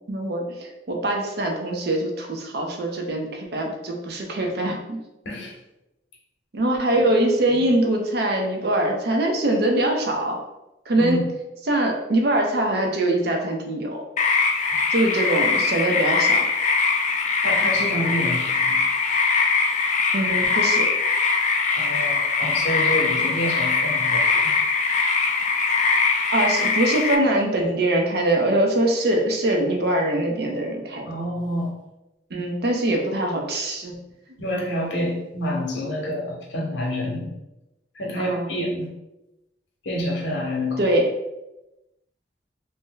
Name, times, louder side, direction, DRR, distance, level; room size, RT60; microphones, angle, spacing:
voice 1, 0.1-5.0 6.5-10.4 10.9-11.2 11.6-14.0 14.9-16.4 20.1-20.9 26.3-31.0 32.3-34.0 38.1-38.5 40.8-41.1, right 1 dB, 55° right, 2 dB, 0.5 m, -23 dB
sound 1, 14.2-27.2, left 4 dB, 40° left, 0.3 m, -22 dB
voice 2, 17.4-18.8 21.7-24.6 31.1-31.7 34.4-37.3 37.9-38.9 39.8-40.9, equal, 75° left, -1 dB, 0.8 m, -28 dB
2.6 x 2.0 x 3.7 m, 0.96 s
head